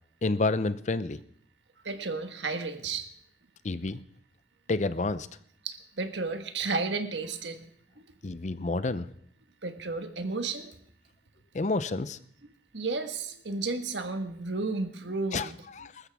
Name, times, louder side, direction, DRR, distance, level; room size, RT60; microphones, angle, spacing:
voice 1, 0.2-1.2 3.6-4.0 4.7-5.3 8.2-9.1 11.5-12.2 15.3-15.5 15.8-15.9, left 3 dB, 40° left, 14 dB, 0.5 m, -29 dB
voice 2, 1.8-3.1 5.6-7.7 8.0-8.2 9.6-10.7 12.7-15.5, right 3 dB, 90° right, 7 dB, 1.4 m, -33 dB
20.5 x 13.0 x 3.5 m, 0.67 s
head